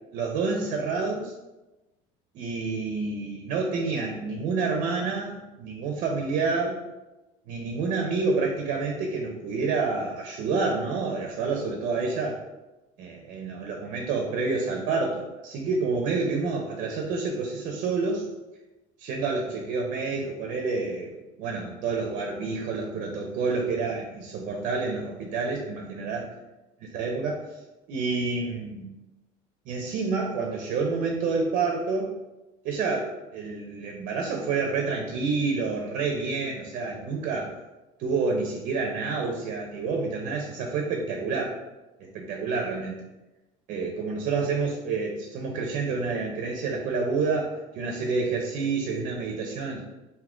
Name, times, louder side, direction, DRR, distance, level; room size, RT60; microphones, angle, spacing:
voice 1, 0.1-1.3 2.3-6.8 7.5-12.4 13.0-18.3 19.0-26.3 26.9-27.4 27.9-28.9 29.7-32.1 32.6-37.5 38.0-41.6 42.0-42.9 43.7-49.8, right 4 dB, 60° right, 2 dB, 0.7 m, -28 dB
3.6 x 2.7 x 3.8 m, 1.0 s
cardioid pair, 140°, 15 cm